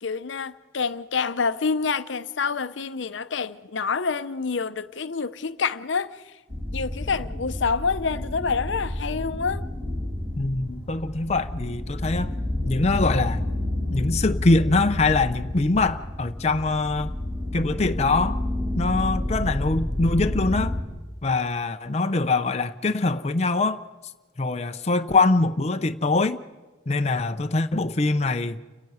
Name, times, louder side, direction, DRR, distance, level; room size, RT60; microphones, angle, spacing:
voice 1, 0.0-6.3 6.7-9.6, left 5 dB, 70° left, 0.7 m, -27 dB
sound 1, 6.5-20.8, left 1 dB, 25° right, 4.8 m, -30 dB
voice 2, 10.4-12.3 12.7-13.5 13.9-17.2 17.5-18.4 18.8-20.8 21.2-23.8 24.4-26.4 26.9-28.6, left 3 dB, 35° left, 0.6 m, -23 dB
29.5 x 10.5 x 9.4 m
head